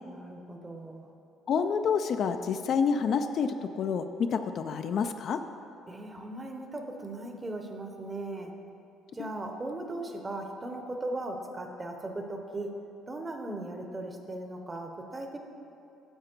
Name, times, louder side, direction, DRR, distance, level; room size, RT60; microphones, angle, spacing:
voice 1, 0.1-1.1 5.9-8.5 9.1-12.7 13.1-15.4, right 2 dB, 20° right, 4 dB, 0.8 m, -38 dB
voice 2, 1.5-5.4, left 6 dB, 50° left, 8 dB, 0.4 m, -28 dB
9.9 x 6.9 x 4.5 m, 2.8 s
cardioid pair, 130°, 0 cm